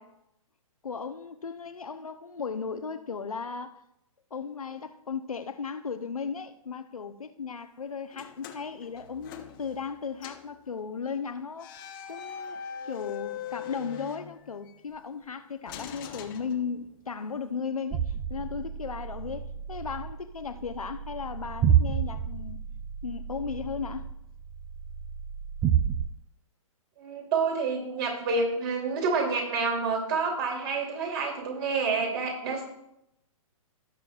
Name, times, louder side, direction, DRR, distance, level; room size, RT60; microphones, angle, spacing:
voice 1, 0.8-3.8 4.3-12.6 12.9-22.6 23.0-24.1, left 5 dB, 80° left, 0.8 m, -36 dB
sound 1, 8.1-9.9 10.2-10.5 11.6-14.8 15.7-17.1, left 9 dB, 40° left, 1.0 m, -41 dB
sound 2, 17.9-26.1, right 9 dB, 20° right, 0.5 m, -30 dB
voice 2, 27.0-32.6, right 4 dB, 45° right, 2.9 m, -28 dB
17.0 x 6.8 x 2.4 m
figure-of-eight pair, 125°, 18 cm